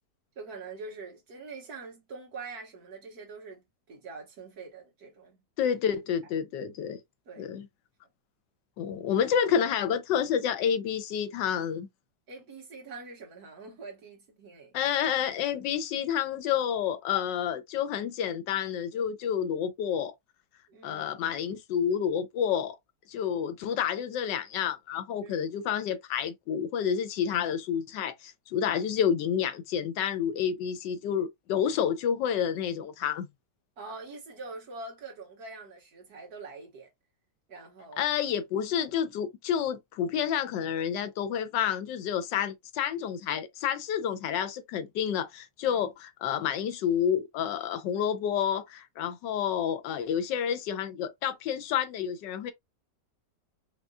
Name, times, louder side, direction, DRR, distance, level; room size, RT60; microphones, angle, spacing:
voice 1, 0.4-5.4 7.3-7.5 12.3-14.7 20.7-21.1 25.2-25.4 28.6-28.8 33.8-36.9 37.5-38.0 45.6-45.8, right 3 dB, 60° right, 1.9 m, -44 dB
voice 2, 5.6-7.0 7.4-7.7 8.8-11.9 14.7-20.1 20.8-22.8 23.1-33.3 38.0-52.5, left 8 dB, 90° left, 1.3 m, -29 dB
5.2 x 2.5 x 2.3 m
omnidirectional pair, 1.9 m